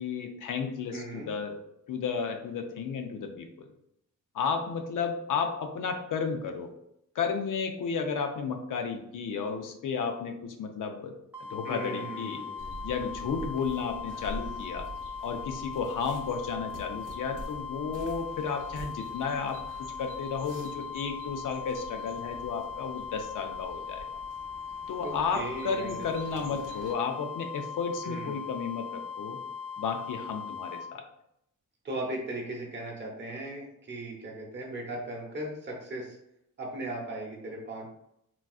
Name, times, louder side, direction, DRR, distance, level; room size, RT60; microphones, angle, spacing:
voice 1, 0.0-1.6 1.9-3.7 4.3-6.7 7.2-11.1 11.4-12.4 12.8-14.9 15.2-24.0 24.9-29.4 29.8-31.0, left 5 dB, 75° left, 5 dB, 0.5 m, -33 dB
voice 2, 0.9-1.3 11.6-12.9 25.0-26.1 26.3-26.6 28.0-28.4 31.8-36.2 36.6-37.9, right 1 dB, 35° right, -2 dB, 0.7 m, -38 dB
sound 1, 11.3-30.9, left 6 dB, 5° right, 0.4 m, -39 dB
sound 2, 12.6-26.9, right 2 dB, 75° right, 0.8 m, -46 dB
3.9 x 2.3 x 2.3 m, 0.77 s
wide cardioid pair, 150°, 32 cm